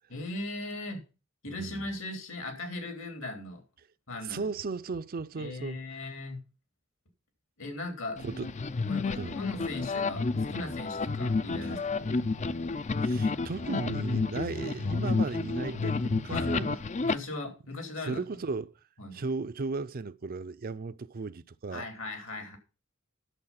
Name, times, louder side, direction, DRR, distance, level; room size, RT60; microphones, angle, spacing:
voice 1, 0.1-1.0 1.4-3.6 4.1-4.5 5.4-6.4 7.6-8.2 8.9-12.1 16.3-16.6 17.0-18.2 19.0-19.2 21.7-22.6, left 2 dB, 65° left, 3.3 m, -38 dB
voice 2, 1.5-1.9 4.2-5.8 8.2-8.5 9.1-9.4 11.6-11.7 13.0-16.8 18.0-18.7 19.1-21.9, right 4 dB, 45° right, 0.5 m, -36 dB
sound 1, 8.2-17.1, left 3 dB, 35° left, 0.5 m, -30 dB
11.0 x 7.2 x 5.8 m
head